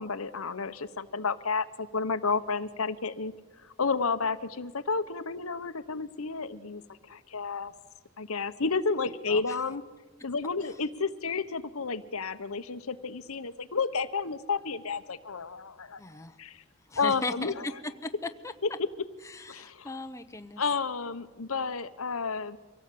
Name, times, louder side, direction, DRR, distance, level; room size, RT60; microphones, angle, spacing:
voice 1, 0.0-3.3 3.6-6.8 7.1-7.7 8.2-9.8 10.2-16.0 16.4-16.6 17.0-17.5 19.5-19.9 20.6-22.6, left 4 dB, 80° left, 12 dB, 1.1 m, -31 dB
voice 2, 16.0-16.4 16.9-17.7 18.0-18.5 19.2-20.6, left 3 dB, 15° left, 8 dB, 0.9 m, -38 dB
25.0 x 17.0 x 8.6 m, 1.2 s
head